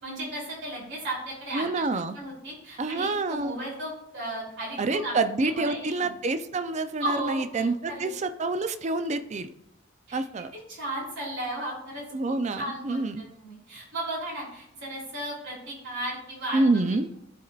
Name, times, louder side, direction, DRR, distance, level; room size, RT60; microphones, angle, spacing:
voice 1, 0.0-1.9 2.1-5.2 5.4-6.1 7.0-8.1 10.1-10.2 10.7-16.8, right 1 dB, 65° right, -3 dB, 3.1 m, -35 dB
voice 2, 1.5-2.2 2.8-3.6 4.8-9.5 10.1-10.5 12.1-13.2 16.5-17.1, right 3 dB, 35° right, 11 dB, 0.5 m, -27 dB
13.5 x 4.6 x 2.4 m, 0.79 s
head